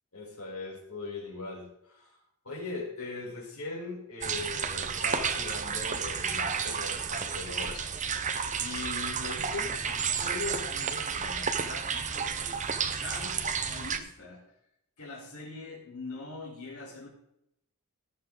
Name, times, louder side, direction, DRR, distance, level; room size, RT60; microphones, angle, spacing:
voice 1, 0.1-2.2 2.4-7.9 8.6-12.7 13.0-14.4 15.0-17.1, left 3 dB, 75° left, -2 dB, 4.4 m, -40 dB
sound 1, 4.2-14.0, right 6 dB, 35° right, 0.9 m, -32 dB
19.0 x 6.8 x 3.9 m, 0.79 s
head